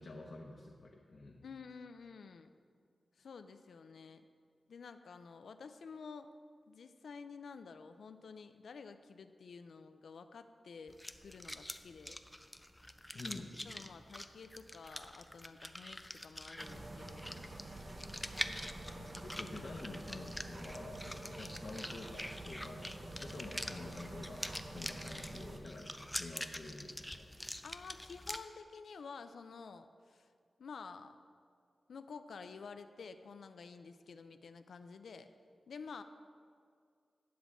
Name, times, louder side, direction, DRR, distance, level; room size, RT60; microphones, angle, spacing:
voice 1, 0.0-1.4 13.1-13.6 18.9-27.3, left 2 dB, 55° left, -1 dB, 0.7 m, -48 dB
voice 2, 1.4-2.5 3.2-4.2 4.7-6.3 6.7-12.2 13.7-17.3 27.6-30.3 30.6-31.2 31.9-35.3 35.7-36.0, left 5 dB, 85° left, 9 dB, 0.4 m, -51 dB
sound 1, 10.9-28.4, left 1 dB, 10° left, 0.4 m, -46 dB
sound 2, 16.6-25.6, right 1 dB, 35° right, 0.7 m, -48 dB
10.0 x 3.7 x 7.1 m, 2.2 s
wide cardioid pair, 100°, 0 cm